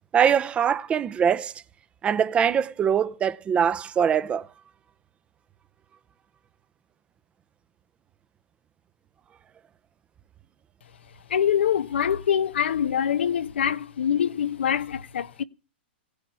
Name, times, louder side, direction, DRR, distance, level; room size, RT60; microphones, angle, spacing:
voice 1, 0.1-1.5 2.0-4.5, right 8 dB, 20° right, 0.9 m, -22 dB
voice 2, 11.3-15.4, left 9 dB, 80° left, 1.0 m, -24 dB
17.5 x 10.0 x 7.0 m
hypercardioid pair, 130°, 6 cm